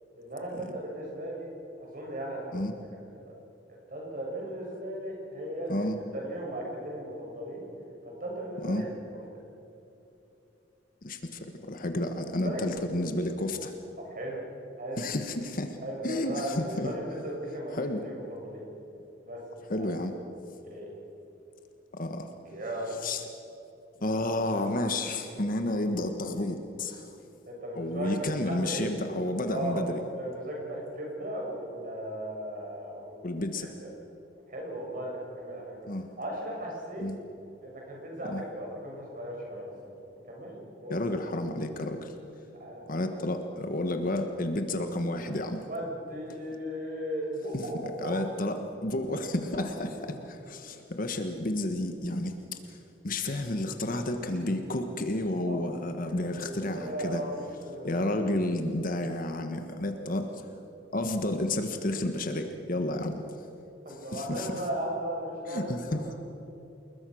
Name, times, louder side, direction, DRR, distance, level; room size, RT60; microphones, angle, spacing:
voice 1, 0.2-1.5 1.8-2.7 3.1-3.4 3.9-5.9 6.1-7.7 8.0-8.9 12.4-12.7 14.0-14.4 14.8-15.0 15.8-17.8 18.0-18.7 19.2-19.9 20.6-20.9 22.4-23.0 27.5-28.9 29.5-33.1 33.6-33.9 34.5-35.8 36.2-37.1 37.6-40.0 40.3-41.0 42.5-42.8 45.7-48.2 49.5-49.7 50.1-50.2 54.3-54.4 55.4-55.7 56.0-58.1 59.9-60.0 63.9-66.2, right 1 dB, 50° right, -1 dB, 7.0 m, -37 dB
voice 2, 11.0-13.7 15.0-15.8 16.0-16.9 17.7-18.0 19.7-20.1 21.9-22.3 23.0-23.2 24.0-27.1 27.7-30.0 33.2-33.7 35.9-36.1 37.0-37.2 38.3-38.4 40.9-42.1 42.9-45.7 48.0-52.8 53.0-57.2 57.8-60.4 60.9-63.2 64.1-64.5 65.5-66.1, left 1 dB, 50° left, 6 dB, 1.4 m, -31 dB
28.5 x 20.5 x 6.4 m, 2.9 s
head